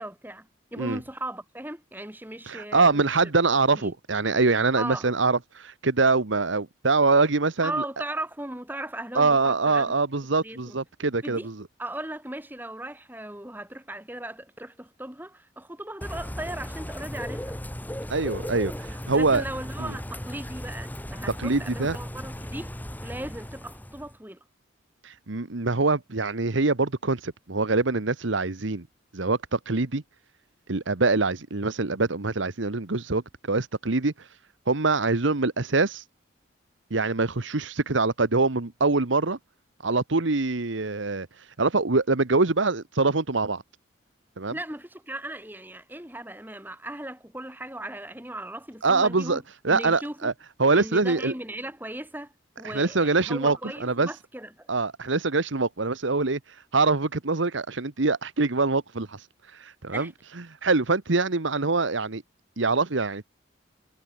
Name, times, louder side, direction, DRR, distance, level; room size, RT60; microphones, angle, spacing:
voice 1, 0.0-3.3 3.8-3.9 4.8-5.1 7.6-9.9 10.4-10.8 11.2-11.5 11.8-17.6 19.1-22.7 23.0-24.4 44.5-49.4 49.7-50.3 50.7-52.3 52.6-54.7 59.9-60.1, right 1 dB, 10° right, 5.0 m, -37 dB
voice 2, 2.5-7.8 9.1-11.6 18.1-19.4 19.8-19.9 21.4-22.0 25.0-28.9 29.1-30.0 30.7-34.3 34.7-36.0 36.9-39.4 39.8-41.3 41.6-43.6 44.4-44.6 48.8-50.3 50.6-51.3 52.6-54.1 54.7-56.4 56.7-59.2 59.5-60.1 60.5-62.2 62.6-63.4, right 3 dB, 75° right, 1.2 m, -24 dB
Bird / Rain, 16.0-24.2, equal, 10° left, 2.1 m, -36 dB
head